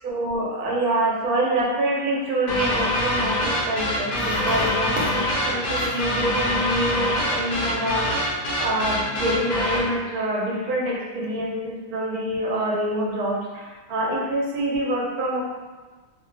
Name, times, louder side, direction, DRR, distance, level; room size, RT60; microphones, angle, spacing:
voice 1, 0.0-8.1 8.6-15.4, right 1 dB, 80° right, -3 dB, 1.2 m, -26 dB
sound 1, 2.5-9.9, left 1 dB, 80° left, 0.4 m, -25 dB
2.6 x 2.2 x 3.2 m, 1.3 s
omnidirectional pair, 1.6 m